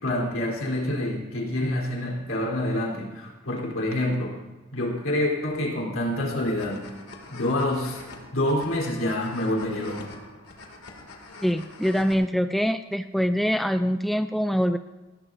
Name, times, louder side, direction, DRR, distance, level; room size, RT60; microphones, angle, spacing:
voice 1, 0.0-4.4 4.7-6.8 7.3-8.0 8.3-10.1, left 1 dB, 65° left, -1 dB, 3.7 m, -27 dB
sound 1, 6.1-12.1, left 3 dB, 85° left, 2.5 m, -45 dB
voice 2, 11.4-14.8, equal, ahead, 8 dB, 0.3 m, -24 dB
20.0 x 17.0 x 2.7 m, 1.2 s
head